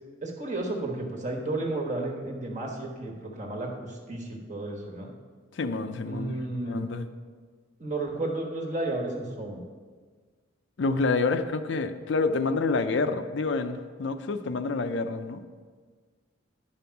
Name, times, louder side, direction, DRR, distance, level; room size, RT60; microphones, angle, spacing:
voice 1, 0.2-5.1 6.0-6.8 7.8-9.6, right 2 dB, 40° right, 0 dB, 1.3 m, -32 dB
voice 2, 5.5-6.3 6.6-7.1 10.8-15.4, left 3 dB, 70° left, 9 dB, 0.5 m, -28 dB
10.5 x 5.4 x 5.8 m, 1.6 s
head